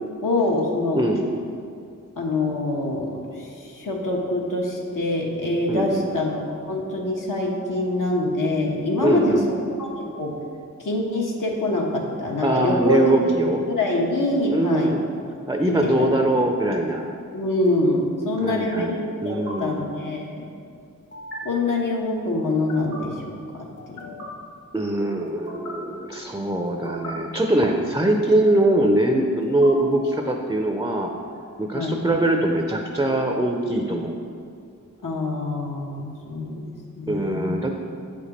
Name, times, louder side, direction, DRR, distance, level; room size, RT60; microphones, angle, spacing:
voice 1, 0.2-1.0 2.2-10.3 10.8-13.1 13.7-15.0 15.7-16.1 17.3-19.0 19.2-20.5 21.4-24.2 31.7-32.0 35.0-37.6, left 2 dB, 75° left, -2 dB, 1.1 m, -25 dB
voice 2, 5.7-6.1 9.0-9.4 12.4-13.6 14.5-15.0 15.5-17.1 18.4-18.9 19.2-19.8 24.7-31.1 31.6-34.2 37.1-37.7, right 1 dB, 10° right, 2 dB, 0.5 m, -22 dB
sound 1, 15.6-15.9 17.6-17.9 19.3-19.5 21.1-21.4 22.5-23.0 23.8-24.3 25.3-25.7 26.6-27.1 28.1-28.7 29.4-30.3, left 1 dB, 50° left, 1.3 m, -40 dB
7.8 x 5.1 x 4.2 m, 2.4 s
wide cardioid pair, 70°, 32 cm